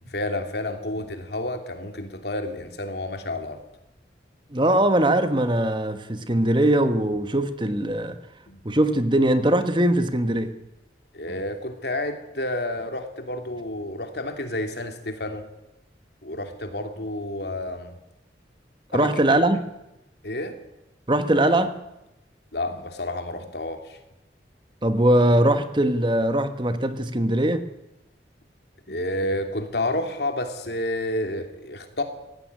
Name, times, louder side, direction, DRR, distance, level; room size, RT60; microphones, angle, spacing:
voice 1, 0.0-3.6 8.5-8.6 11.1-15.5 16.2-18.0 18.9-19.1 20.2-20.5 22.5-24.0 28.9-32.0, left 1 dB, 65° left, 3.0 m, -30 dB
voice 2, 4.5-8.2 8.6-10.5 18.9-19.6 21.1-21.8 24.8-27.6, right 1 dB, 25° right, 1.3 m, -21 dB
18.0 x 16.0 x 9.7 m
head